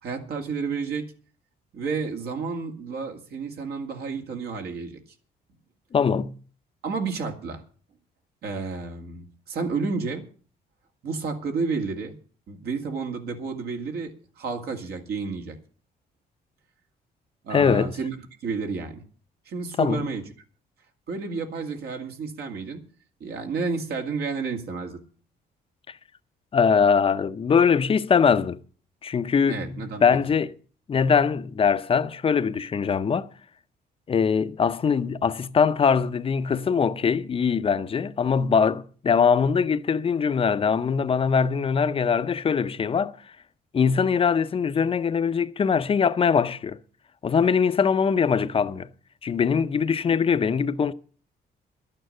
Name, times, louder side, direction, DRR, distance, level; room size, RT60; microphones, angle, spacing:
voice 1, 0.0-1.1 1.7-5.0 6.8-7.6 8.4-10.2 11.0-12.1 12.5-15.6 17.4-18.2 18.4-19.0 19.5-20.2 21.1-22.8 23.2-25.0 29.5-30.0, right 4 dB, 70° right, 2.2 m, -31 dB
voice 2, 5.9-6.3 17.5-18.0 19.8-20.1 26.5-28.6 29.0-30.5 30.9-33.3 34.1-43.1 43.7-46.8 47.2-48.9 49.2-50.9, left 6 dB, 35° left, 0.7 m, -22 dB
12.0 x 8.9 x 7.8 m
cardioid pair, 135°, 17 cm